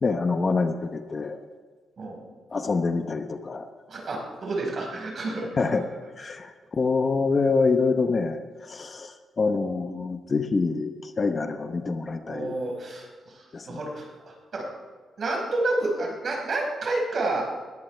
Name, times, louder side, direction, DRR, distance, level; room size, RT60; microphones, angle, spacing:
voice 1, 0.0-1.4 2.5-3.6 5.6-5.8 6.2-12.6 13.5-13.8, left 4 dB, 35° left, 7 dB, 0.9 m, -26 dB
voice 2, 3.9-5.5 12.2-14.7 15.2-17.4, right 2 dB, 50° right, -1 dB, 5.0 m, -30 dB
20.5 x 14.0 x 3.4 m, 1.5 s
cardioid pair, 130°, 0 cm